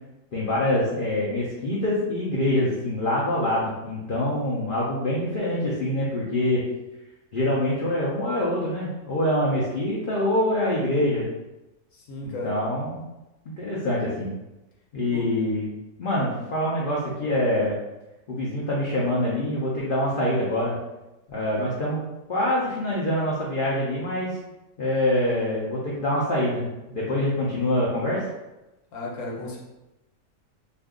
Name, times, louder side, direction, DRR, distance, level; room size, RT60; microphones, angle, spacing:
voice 1, 0.3-6.6 7.3-11.3 12.2-13.0 13.6-14.3 14.9-15.7 16.0-17.7 18.3-20.8 21.3-22.0 22.3-24.4 24.8-28.2, left 1 dB, 80° left, -6 dB, 0.4 m, -25 dB
voice 2, 11.9-12.6 15.1-15.3 28.9-29.6, left 2 dB, 60° left, -4 dB, 1.0 m, -34 dB
2.5 x 2.3 x 3.5 m, 0.99 s
omnidirectional pair, 1.7 m